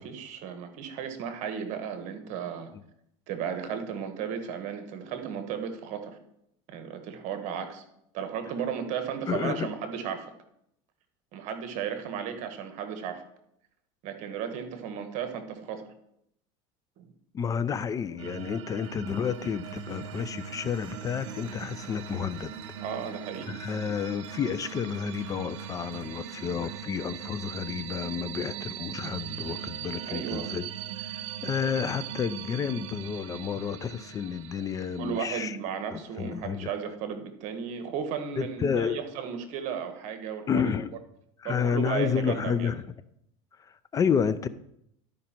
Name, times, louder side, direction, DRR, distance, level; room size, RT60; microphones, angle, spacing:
voice 1, 0.0-2.7 3.3-6.2 6.7-7.8 8.1-10.3 11.3-13.2 14.0-15.9 17.0-17.1 22.8-23.5 30.1-30.6 35.0-40.7 41.4-42.7, right 7 dB, 55° right, 7 dB, 1.3 m, -35 dB
voice 2, 9.3-9.7 17.3-22.5 23.5-30.6 31.0-35.6 35.9-36.7 38.4-39.1 40.5-40.9 41.4-42.9 43.6-44.5, left 7 dB, 25° left, 14 dB, 0.4 m, -30 dB
Applause, 18.0-27.2, right 2 dB, 30° right, 3.4 m, -53 dB
sound 1, 18.2-35.4, right 9 dB, 85° right, 0.6 m, -40 dB
12.0 x 5.1 x 4.4 m, 0.76 s
supercardioid pair, 125°, 15 cm